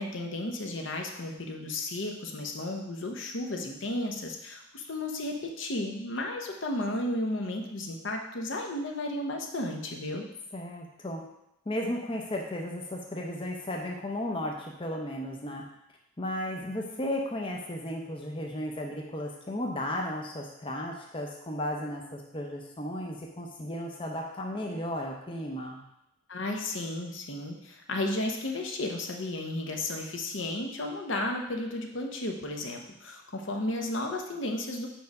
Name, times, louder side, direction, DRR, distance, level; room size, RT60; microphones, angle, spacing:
voice 1, 0.0-10.2 26.3-34.9, left 1 dB, 65° left, 2 dB, 0.8 m, -33 dB
voice 2, 10.5-11.2 11.7-15.7 16.2-25.8, left 1 dB, 25° left, 0 dB, 0.6 m, -34 dB
4.8 x 4.6 x 5.3 m, 0.83 s
head